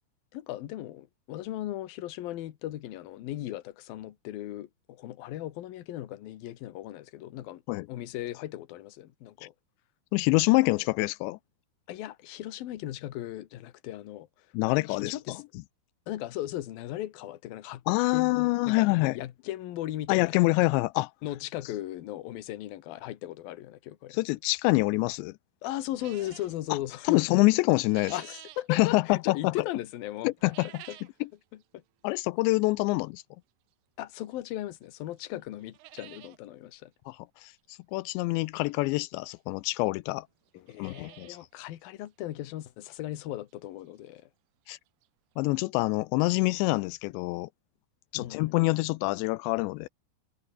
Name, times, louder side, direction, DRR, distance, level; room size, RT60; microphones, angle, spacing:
voice 1, 0.3-7.6 7.9-9.5 10.6-10.9 11.9-15.4 16.1-17.8 18.1-20.4 21.2-24.2 25.6-27.2 28.1-30.5 30.9-31.0 31.5-31.8 34.0-36.9 40.5-44.3 48.1-48.6, left 14 dB, 65° left, 2.6 m, -37 dB
voice 2, 10.1-11.4 14.5-15.4 17.9-19.2 20.1-21.1 24.1-25.3 27.1-28.1 28.7-29.5 30.2-30.7 32.0-33.2 37.1-37.2 37.4-40.3 40.8-41.3 44.7-44.8 45.4-47.5 48.1-49.9, left 22 dB, 90° left, 2.5 m, -26 dB
sound 1, 26.0-26.6 27.5-28.7 30.4-31.2 31.6-31.7 32.5-32.6 34.3-34.4 34.8-34.9 35.2-35.3 35.6-36.4 36.7-36.8 37.0-37.1 38.7-38.8 39.6-39.7 39.9-40.0 40.5-41.5 41.8-41.9 42.4-42.5 42.9-43.0 44.7-44.8 45.0-45.1 45.5-45.6, right 16 dB, 70° right, 2.6 m, -50 dB
omnidirectional pair, 5.7 m